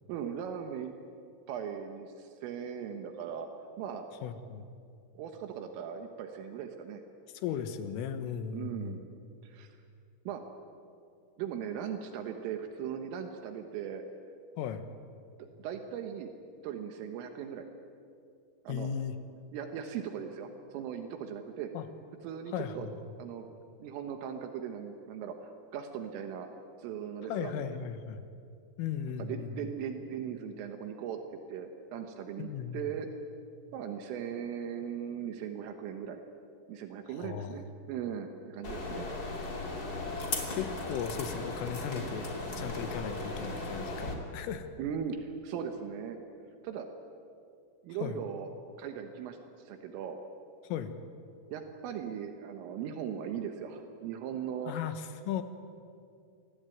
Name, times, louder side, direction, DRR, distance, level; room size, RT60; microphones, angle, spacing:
voice 1, 0.1-0.9 1.5-3.5 3.8-4.1 5.2-7.0 8.5-9.0 9.4-9.8 10.3-10.4 11.4-14.0 15.4-16.3 16.6-17.7 18.7-18.9 19.5-21.7 22.2-22.9 23.2-23.5 23.8-26.5 26.8-27.8 29.2-31.2 31.5-33.1 33.7-36.2 36.7-39.1 44.8-46.2 46.6-46.9 47.8-48.5 48.8-50.2 51.5-54.7, right 8 dB, 80° right, 6 dB, 3.9 m, -39 dB
voice 2, 4.2-4.7 7.3-9.0 14.6-14.9 18.7-19.2 21.7-21.9 22.5-22.9 27.3-28.3 28.8-29.7 32.4-32.9 37.2-37.6 40.2-44.7 48.0-48.2 50.6-50.9 54.7-55.4, left 8 dB, 80° left, 10 dB, 3.8 m, -37 dB
sound 1, 38.6-44.1, left 2 dB, 25° left, 2.3 m, -37 dB
26.5 x 20.5 x 9.3 m, 2.4 s
omnidirectional pair, 5.9 m